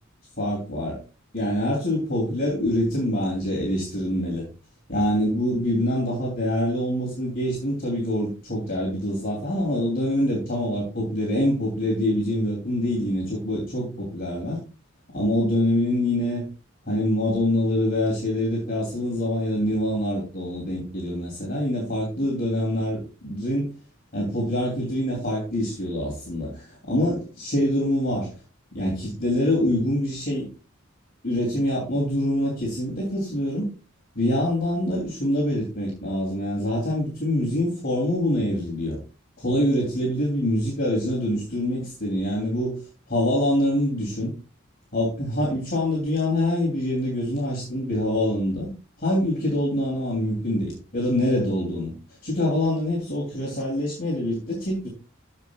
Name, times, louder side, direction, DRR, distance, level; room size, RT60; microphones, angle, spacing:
voice 1, 0.4-1.0 1.3-4.4 4.9-14.6 15.1-16.4 16.9-23.7 24.1-28.3 28.7-30.5 31.2-33.7 34.1-39.0 39.4-44.3 44.9-48.7 49.0-51.9 52.2-54.9, left 1 dB, 45° left, -3 dB, 3.0 m, -25 dB
14.5 x 5.5 x 2.4 m, 0.33 s
head